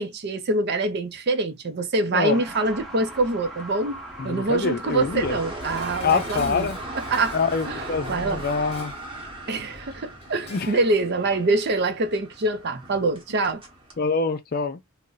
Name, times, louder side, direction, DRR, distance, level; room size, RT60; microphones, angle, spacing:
voice 1, 0.0-4.0 4.2-6.7 7.1-7.4 7.7-8.4 9.5-13.6, right 2 dB, 50° right, 0.5 m, -25 dB
voice 2, 2.1-2.4 4.2-5.4 6.0-6.8 7.3-8.9 10.5-10.8 14.0-14.8, left 5 dB, 45° left, 0.4 m, -25 dB
Truck, 2.2-8.0, right 1 dB, ahead, 0.7 m, -41 dB
sound 1, 2.5-14.0, right 1 dB, 25° right, 1.0 m, -39 dB
Dishes pots and pans, 5.6-10.9 11.2-11.3, left 3 dB, 30° left, 0.9 m, -45 dB
2.5 x 2.1 x 3.8 m
head